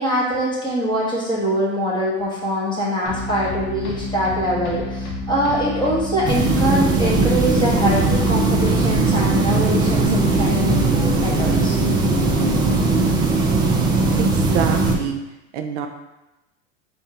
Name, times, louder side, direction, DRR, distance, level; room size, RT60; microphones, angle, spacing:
voice 1, 0.0-11.8, equal, 10° left, -6 dB, 1.2 m, -23 dB
sound 1, 3.1-10.1, left 2 dB, 50° left, 1.1 m, -29 dB
sound 2, 6.2-15.0, right 3 dB, 15° right, 0.3 m, -19 dB
voice 2, 14.1-15.2 15.5-15.9, right 8 dB, 75° right, 5 dB, 0.6 m, -26 dB
3.5 x 2.5 x 4.2 m, 0.99 s
supercardioid pair, 120°, 36 cm